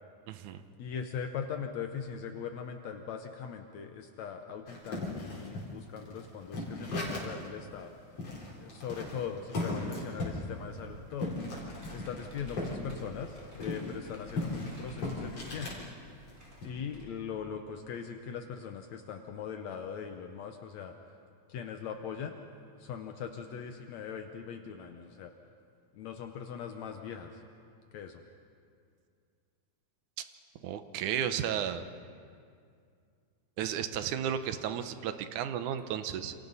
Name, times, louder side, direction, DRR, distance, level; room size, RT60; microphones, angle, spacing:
voice 1, 0.3-0.6 30.6-31.8 33.6-36.3, right 9 dB, 90° right, 10 dB, 2.3 m, -33 dB
voice 2, 0.8-7.9 8.6-11.3 11.9-15.9 16.6-21.0 21.5-22.4 22.8-25.3 25.9-27.4 27.9-28.2, left 7 dB, 75° left, 5 dB, 2.2 m, -40 dB
sound 1, 4.7-7.5 7.8-7.9 8.2-12.8 13.1-15.8 16.3-16.7, left 2 dB, 50° left, 4.9 m, -37 dB
Computer keyboard, 10.3-17.0, equal, 15° right, 6.1 m, -53 dB
28.5 x 28.0 x 4.1 m, 2.3 s
omnidirectional pair, 3.4 m